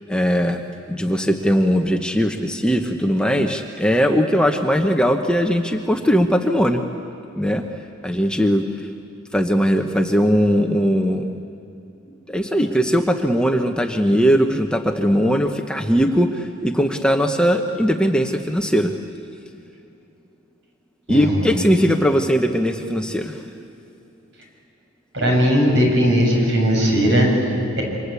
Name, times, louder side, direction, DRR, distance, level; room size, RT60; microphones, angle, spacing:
voice 1, 0.1-0.6 0.9-6.8 7.4-7.6 8.0-8.9 9.3-11.4 12.3-18.9 21.1-23.4, equal, 5° left, 4 dB, 1.0 m, -19 dB
voice 2, 21.1-21.5 25.1-27.8, equal, 55° right, 0 dB, 6.9 m, -18 dB
28.0 x 25.0 x 8.4 m, 2.8 s
head